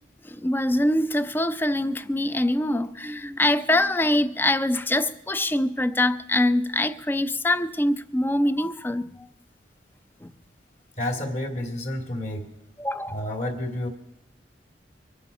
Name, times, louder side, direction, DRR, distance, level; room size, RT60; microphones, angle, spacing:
voice 1, 0.2-9.1 10.2-10.3 12.8-13.2, left 1 dB, 10° left, 0.5 m, -24 dB
voice 2, 11.0-12.5 13.1-13.9, left 1 dB, 45° left, 2.5 m, -30 dB
23.5 x 8.4 x 5.6 m
head